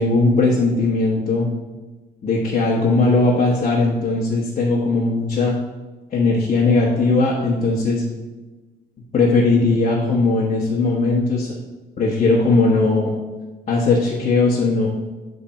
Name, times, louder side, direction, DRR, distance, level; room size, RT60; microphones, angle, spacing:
voice 1, 0.0-1.5 2.2-5.5 6.1-8.0 9.1-11.5 12.0-13.1 13.7-14.9, left 3 dB, 40° left, -3 dB, 1.1 m, -18 dB
8.7 x 3.4 x 4.3 m, 1.2 s
cardioid pair, 110°, 17 cm